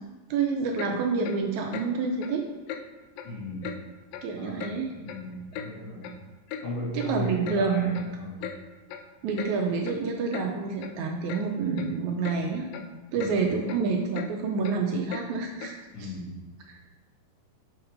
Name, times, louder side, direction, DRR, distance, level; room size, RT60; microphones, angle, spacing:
voice 1, 0.3-2.4 4.2-4.9 6.9-8.0 9.2-12.7 13.1-16.1 16.7-16.8, right 4 dB, 75° right, 2 dB, 1.7 m, -28 dB
Clock, 0.8-0.9 1.2-1.4 1.7-1.9 2.2-2.3 2.7-2.8 3.2-3.3 3.6-3.8 4.1-4.3 4.6-4.7 5.1-5.7 6.0-6.1 6.5-6.6 7.0-7.1 7.5-7.6 7.9-8.1 8.4-8.6 8.9-9.1 9.4-9.5 9.8-10.0 10.3-10.5 10.8-10.9 11.3-11.4 11.8-11.9 12.2-12.4 12.7-12.9 13.2-13.4 13.6-13.8 14.1-14.3 14.6-14.8 15.1-15.3 15.6-15.7, left 8 dB, 90° left, 2.3 m, -38 dB
voice 2, 3.2-3.8 4.3-6.1 6.6-8.4 13.1-13.4 15.9-16.3, equal, 70° left, -13 dB, 4.0 m, -36 dB
7.1 x 4.6 x 5.0 m, 1.2 s
omnidirectional pair, 3.9 m